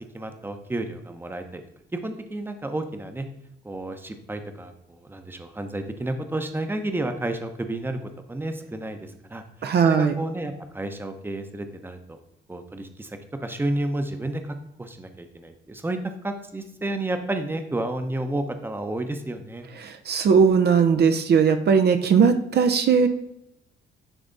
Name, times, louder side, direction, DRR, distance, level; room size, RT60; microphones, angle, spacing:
voice 1, 0.1-1.6 1.9-3.3 3.6-9.4 9.8-12.2 12.5-19.7, right 1 dB, 10° right, 7 dB, 0.9 m, -31 dB
voice 2, 9.6-10.1 19.8-23.1, right 6 dB, 55° right, 7 dB, 0.7 m, -19 dB
9.9 x 3.4 x 4.0 m, 0.83 s
cardioid pair, 90°, 20 cm